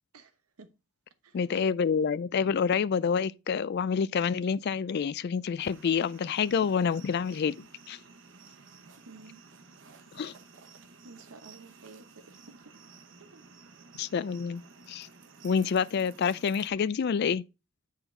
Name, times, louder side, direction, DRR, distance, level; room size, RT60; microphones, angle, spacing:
voice 1, 1.3-7.6 7.9-8.0 10.1-10.3 14.0-14.6 14.9-15.1 15.4-17.4, left 6 dB, 50° left, 0.3 m, -27 dB
sound 1, 5.6-16.7, right 4 dB, 60° right, 0.9 m, -53 dB
voice 2, 9.0-9.4 11.0-12.6 13.2-13.4, right 3 dB, 90° right, 1.0 m, -51 dB
8.1 x 3.7 x 4.4 m
head